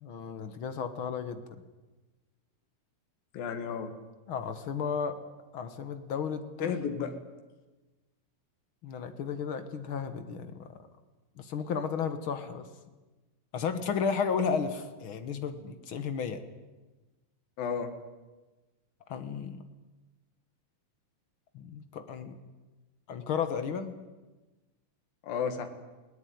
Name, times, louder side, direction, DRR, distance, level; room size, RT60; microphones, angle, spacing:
voice 1, 0.0-1.4 4.3-5.2 5.5-6.7 8.8-10.7 11.4-12.6 13.5-16.4 19.1-19.6 21.5-22.4 23.1-23.9, left 6 dB, 50° left, 9 dB, 1.7 m, -33 dB
voice 2, 3.3-4.0 6.6-7.1 17.6-17.9 25.2-25.7, left 6 dB, 85° left, 6 dB, 3.4 m, -32 dB
20.0 x 18.5 x 9.5 m, 1.2 s
omnidirectional pair, 4.0 m